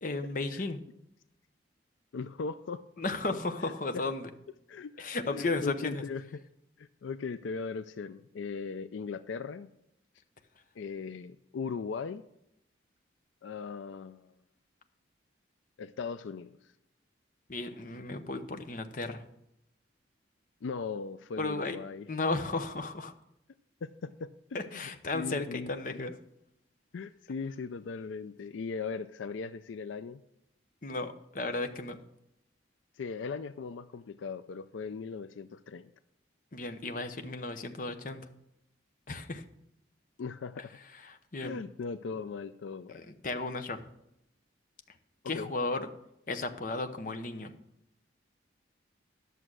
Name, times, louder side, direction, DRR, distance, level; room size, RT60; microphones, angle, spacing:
voice 1, 0.0-0.8 3.0-4.3 5.0-6.0 17.5-19.2 21.4-21.8 22.1-23.1 24.5-26.1 30.8-32.0 36.5-38.3 39.1-39.4 40.9-41.6 42.9-43.8 45.3-45.9 46.3-47.5, left 3 dB, 45° left, 7 dB, 0.8 m, -34 dB
voice 2, 2.1-2.8 4.7-6.4 6.8-9.7 10.8-12.2 13.4-14.3 15.8-16.7 20.6-22.1 23.8-24.8 25.1-26.0 26.9-30.2 32.9-35.9 40.2-40.7 41.4-43.0 45.2-45.5, left 5 dB, 80° left, 12 dB, 0.4 m, -39 dB
11.0 x 6.8 x 6.2 m, 0.82 s
head